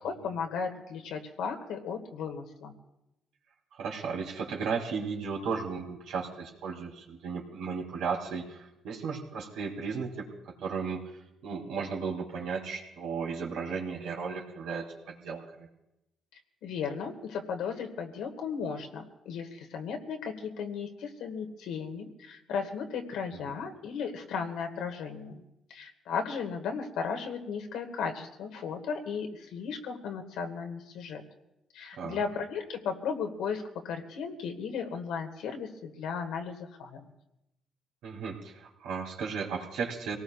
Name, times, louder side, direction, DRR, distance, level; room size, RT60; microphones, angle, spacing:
voice 1, 0.0-2.7 16.6-25.4 25.7-31.2 31.7-37.1, left 6 dB, 90° left, 4 dB, 1.8 m, -35 dB
voice 2, 3.7-11.0 11.4-15.7 31.9-32.2 38.0-40.2, right 5 dB, 85° right, 0 dB, 3.1 m, -35 dB
25.5 x 18.5 x 2.4 m, 0.89 s
cardioid pair, 90°, 0 cm